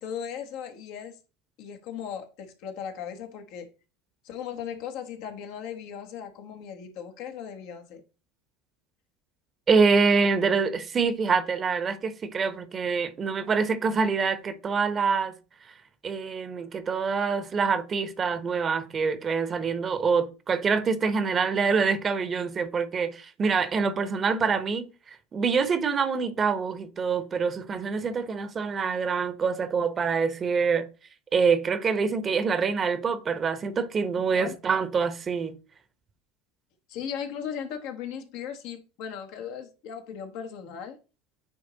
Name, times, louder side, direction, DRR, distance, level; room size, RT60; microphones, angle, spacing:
voice 1, 0.0-1.2 1.6-3.7 4.2-8.0 34.1-34.5 36.9-41.0, left 8 dB, 65° left, 1.4 m, -37 dB
voice 2, 9.7-15.4 16.0-30.9 31.3-35.6, right 5 dB, 35° right, 1.0 m, -25 dB
9.2 x 3.1 x 4.0 m
hypercardioid pair, 80°, 0 cm